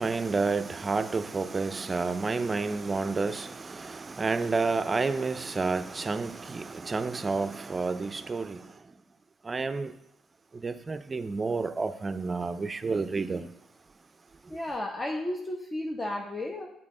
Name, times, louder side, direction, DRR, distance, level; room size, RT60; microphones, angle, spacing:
voice 1, 0.0-8.6 9.5-9.9 10.6-13.5, right 4 dB, 30° right, 0.4 m, -30 dB
voice 2, 14.5-16.7, left 1 dB, 30° left, 0.9 m, -33 dB
8.6 x 4.1 x 3.7 m
supercardioid pair, 70°, 0 cm